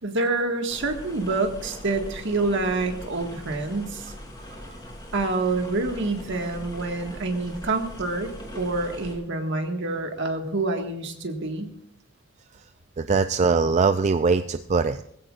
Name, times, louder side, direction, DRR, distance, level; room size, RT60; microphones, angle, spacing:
voice 1, 0.0-4.1 5.1-11.7, right 3 dB, 60° right, 4 dB, 1.8 m, -27 dB
sound 1, 0.7-9.1, equal, 20° left, 3.5 m, -41 dB
voice 2, 13.0-15.0, right 4 dB, 35° right, 10 dB, 0.4 m, -21 dB
20.5 x 16.0 x 2.5 m, 0.72 s
head